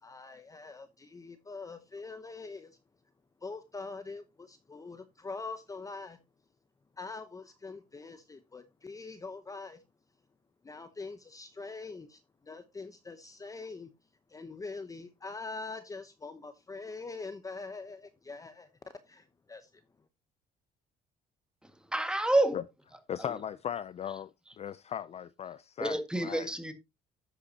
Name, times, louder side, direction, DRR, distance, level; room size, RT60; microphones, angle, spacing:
voice 1, 0.0-2.8 3.4-6.2 7.0-9.8 10.6-13.9 14.3-18.7 19.1-19.8, left 3 dB, 20° left, 0.8 m, -43 dB
voice 2, 21.6-22.6 23.2-23.3 25.8-26.7, right 2 dB, 5° right, 1.8 m, -29 dB
voice 3, 23.1-24.3 24.6-26.5, left 9 dB, 40° left, 0.4 m, -37 dB
11.5 x 8.2 x 2.8 m
cardioid pair, 110°, 17 cm